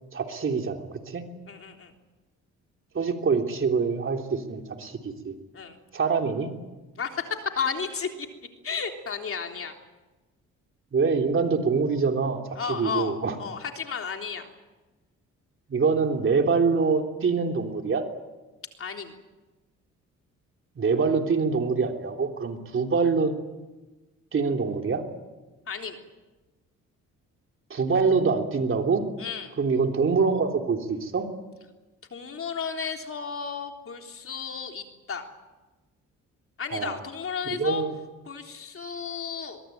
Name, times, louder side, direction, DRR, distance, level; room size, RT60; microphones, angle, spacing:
voice 1, 0.1-1.2 2.9-5.3 5.9-6.5 10.9-12.4 12.7-13.3 15.7-18.1 20.7-23.3 24.3-25.0 27.7-29.1 29.6-31.3 36.7-37.0 37.4-37.9, right 5 dB, 45° right, 4 dB, 3.4 m, -25 dB
voice 2, 1.5-1.9 5.5-5.8 7.0-8.3 8.6-9.8 12.6-14.5 18.8-19.2 25.7-26.0 29.2-29.5 32.1-35.3 36.6-37.8 38.3-39.6, left 6 dB, 45° left, 4 dB, 3.6 m, -33 dB
23.0 x 22.5 x 9.3 m, 1.1 s
cardioid pair, 90°, 30 cm